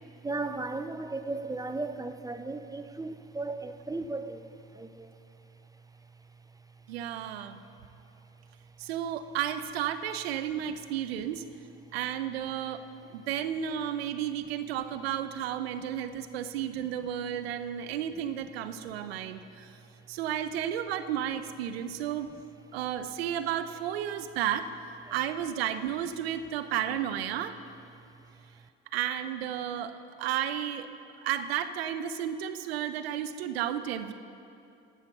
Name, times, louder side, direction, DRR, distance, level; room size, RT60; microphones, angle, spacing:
voice 1, 0.2-5.2 25.1-25.2, right 3 dB, 10° right, 9 dB, 0.5 m, -36 dB
voice 2, 6.9-7.6 8.8-11.4 11.9-12.8 13.1-19.8 20.1-22.3 22.7-24.7 25.1-27.5 28.9-30.9 31.2-34.1, right 10 dB, 85° right, 11 dB, 0.6 m, -32 dB
16.0 x 5.7 x 6.0 m, 2.6 s
hypercardioid pair, 65°, 30 cm